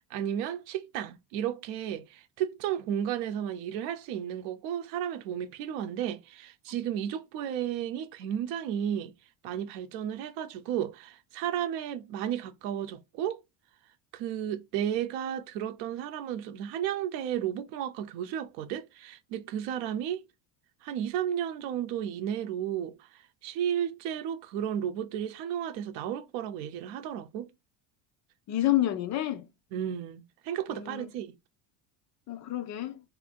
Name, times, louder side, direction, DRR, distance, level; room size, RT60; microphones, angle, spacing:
voice 1, 0.1-9.1 9.4-13.4 14.1-20.2 20.8-27.5 29.7-31.3, right 10 dB, 80° right, 0.7 m, -33 dB
voice 2, 28.5-29.5 30.7-31.1 32.3-33.0, left 14 dB, 40° left, 0.5 m, -29 dB
2.7 x 2.6 x 4.2 m
cardioid pair, 160°, 43 cm